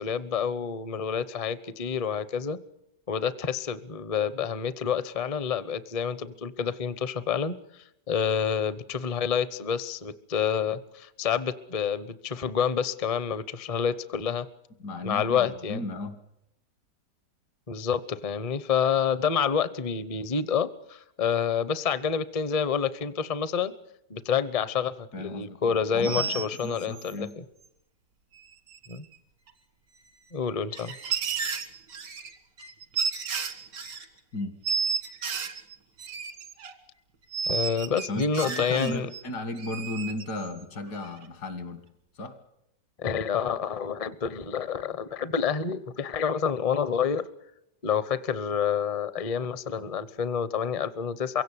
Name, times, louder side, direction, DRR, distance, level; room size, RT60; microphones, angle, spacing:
voice 1, 0.0-2.6 3.1-14.5 15.0-15.8 17.7-23.7 24.1-27.4 28.9-29.1 30.3-31.0 37.5-39.1 43.0-47.3 47.8-51.4, left 7 dB, 35° left, 15 dB, 0.6 m, -28 dB
voice 2, 14.8-16.2 25.1-27.3 34.3-34.5 38.1-41.8 42.2-42.4, left 2 dB, 70° left, 10 dB, 2.5 m, -35 dB
sound 1, 26.0-27.2 28.4-28.5 28.7-29.2 29.5-29.6 30.5-34.1 34.6-36.7 37.3-39.2 39.6-40.6 41.0-41.3, right 6 dB, 90° right, 2.3 m, -32 dB
23.5 x 17.0 x 8.3 m, 0.81 s
omnidirectional pair, 1.8 m